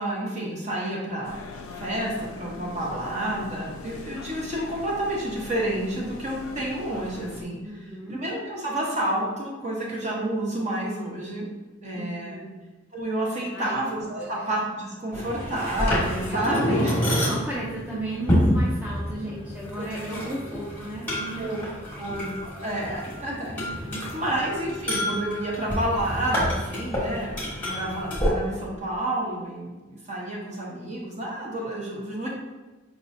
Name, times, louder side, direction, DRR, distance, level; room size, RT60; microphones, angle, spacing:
voice 1, 0.0-1.4 1.8-11.5 11.8-12.4 12.9-16.9 19.2-19.3 19.8-20.3 21.4-21.6 22.0-23.5 24.1-32.3, right 1 dB, 35° right, -3 dB, 0.9 m, -30 dB
sound 1, 1.2-7.5, left 4 dB, 90° left, 0.4 m, -41 dB
voice 2, 7.6-8.2 11.9-12.5 13.5-13.8 14.2-14.4 15.2-15.3 16.3-21.7 23.6-24.0, right 1 dB, 10° right, -7 dB, 0.4 m, -35 dB
sound 2, 15.1-28.3, equal, 10° left, 1.1 m, -28 dB
5.0 x 3.0 x 2.6 m, 1.2 s
head